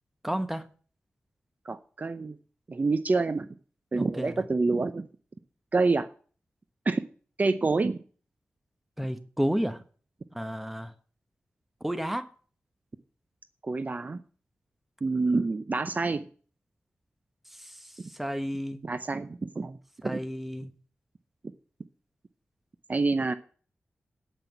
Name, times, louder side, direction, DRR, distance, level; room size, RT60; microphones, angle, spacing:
voice 1, 0.2-0.6 3.9-4.4 9.0-9.8 10.3-10.9 11.8-12.3 18.2-18.8 20.0-20.7, equal, 5° right, 1.0 m, -31 dB
voice 2, 1.7-2.3 2.7-3.5 3.9-5.1 5.7-6.1 6.9-7.0 7.4-8.0 13.6-14.2 15.0-16.3 18.0-18.1 18.8-19.8 20.0-20.2 22.9-23.3, right 3 dB, 40° right, 0.6 m, -27 dB
8.9 x 5.9 x 8.0 m
wide cardioid pair, 80°, 4 cm